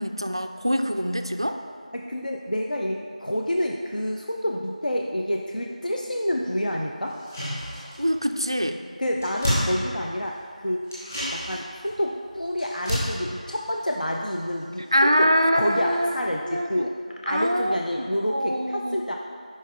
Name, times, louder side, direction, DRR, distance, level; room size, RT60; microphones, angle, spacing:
voice 1, 0.0-1.6 8.0-8.8 14.9-16.1 16.5-16.9 17.3-19.1, equal, 35° right, 6 dB, 0.3 m, -24 dB
voice 2, 1.9-7.1 9.0-10.8 11.3-15.3 15.5-19.1, equal, 75° left, 0 dB, 0.6 m, -28 dB
sound 1, 7.1-8.2 8.5-8.6 8.9-10.4 10.8-14.6 14.9-15.0, equal, 20° left, 1.7 m, -31 dB
9.4 x 5.5 x 3.7 m, 2.1 s
figure-of-eight pair, 175°, 4 cm